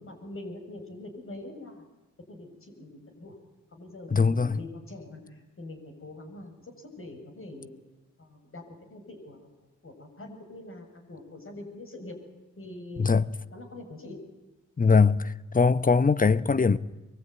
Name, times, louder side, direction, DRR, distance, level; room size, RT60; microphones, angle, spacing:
voice 1, 0.0-1.8 2.3-3.3 3.7-7.7 8.2-9.4 9.8-12.2 12.6-13.1 13.5-14.2, left 2 dB, 45° left, 7.4 m, -43 dB
voice 2, 4.1-4.6 13.0-13.3 14.8-16.8, left 4 dB, 30° left, 1.1 m, -21 dB
23.5 x 23.0 x 9.6 m
cardioid pair, 60°, 30 cm